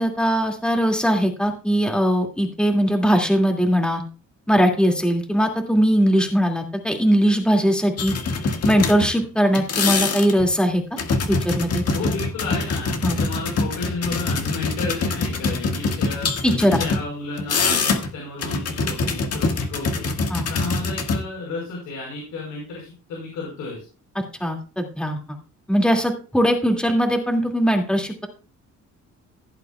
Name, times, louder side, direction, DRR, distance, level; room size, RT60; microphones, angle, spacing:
voice 1, 0.0-4.0 4.5-8.1 8.6-10.8 11.3-11.8 13.0-13.2 16.4-16.8 20.3-20.4 24.4-25.2 25.7-28.1, equal, 5° left, 2 dB, 2.3 m, -20 dB
sound 1, 8.0-9.2 9.5-10.5 11.0-17.0 17.4-18.1 18.4-21.2, left 3 dB, 55° left, 1.8 m, -24 dB
voice 2, 11.9-16.3 16.6-20.1 20.5-23.9, left 3 dB, 90° left, -4 dB, 5.3 m, -32 dB
16.5 x 8.2 x 2.3 m, 0.35 s
cardioid pair, 90°, 30 cm